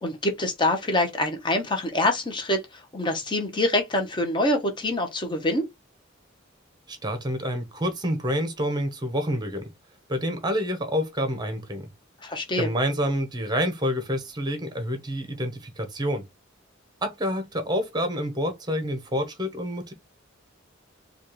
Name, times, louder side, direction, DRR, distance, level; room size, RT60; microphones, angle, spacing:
voice 1, 0.0-2.6 2.9-5.7 12.2-12.7, left 1 dB, 25° left, 0.9 m, -25 dB
voice 2, 6.9-9.7 10.1-11.9 12.6-16.2 17.0-19.9, equal, 20° right, 0.9 m, -28 dB
4.2 x 2.4 x 3.0 m
head